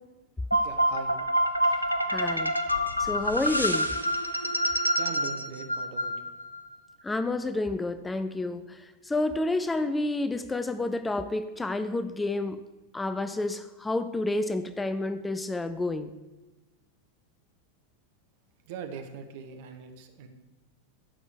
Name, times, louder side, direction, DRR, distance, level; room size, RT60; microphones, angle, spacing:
sound 1, 0.5-6.6, equal, 85° left, 0.8 m, -27 dB
voice 1, 0.6-1.2 5.0-6.1 18.7-20.3, right 7 dB, 50° right, 6 dB, 1.3 m, -41 dB
voice 2, 2.1-2.5 3.0-4.0 7.0-12.6 12.9-16.1, left 2 dB, 10° left, 10 dB, 0.5 m, -30 dB
13.0 x 5.2 x 6.9 m, 1.1 s
figure-of-eight pair, 90°, 0 cm